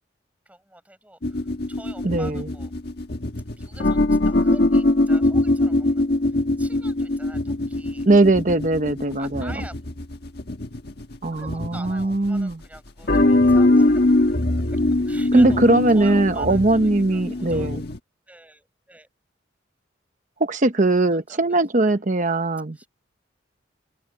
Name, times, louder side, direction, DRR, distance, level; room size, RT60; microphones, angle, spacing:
voice 1, 0.5-2.7 3.5-8.1 9.2-9.8 11.4-14.2 14.7-14.8 15.0-15.6 15.9-17.8 18.3-19.1 20.7-20.9 21.3-21.6 21.9-22.0 22.7-22.9, right 1 dB, 10° right, 7.1 m, -45 dB
sound 1, 1.2-12.4 13.0-18.0, left 2 dB, 55° left, 1.5 m, -22 dB
voice 2, 2.0-2.5 8.1-9.5 11.2-12.6 15.3-17.8 20.4-22.8, right 2 dB, 40° right, 0.9 m, -20 dB
open air
head